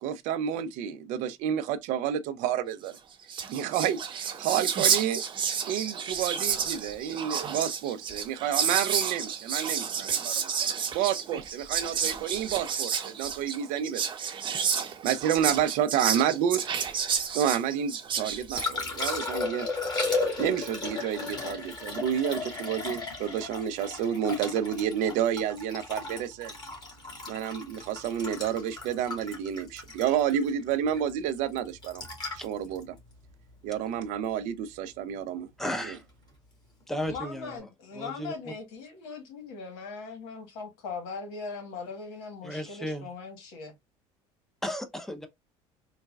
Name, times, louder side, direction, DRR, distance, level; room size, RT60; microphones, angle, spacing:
voice 1, 0.0-3.0 3.5-5.2 5.7-14.0 15.0-16.6 17.3-19.7 20.4-26.5 27.3-32.0 32.3-33.0 33.6-35.5 35.9-36.0, right 9 dB, 70° right, 0.5 m, -30 dB
Whispering, 3.0-3.1 3.2-19.2, right 7 dB, 40° right, 0.8 m, -30 dB
Liquid, 18.1-34.2 37.0-37.2, left 3 dB, 30° left, 1.9 m, -35 dB
voice 2, 35.6-36.0 36.9-37.6 37.9-38.5 42.4-43.1 44.6-45.3, equal, 5° left, 0.7 m, -34 dB
voice 3, 37.1-43.7, left 4 dB, 80° left, 1.3 m, -40 dB
3.9 x 2.2 x 2.3 m
supercardioid pair, 100°, 13 cm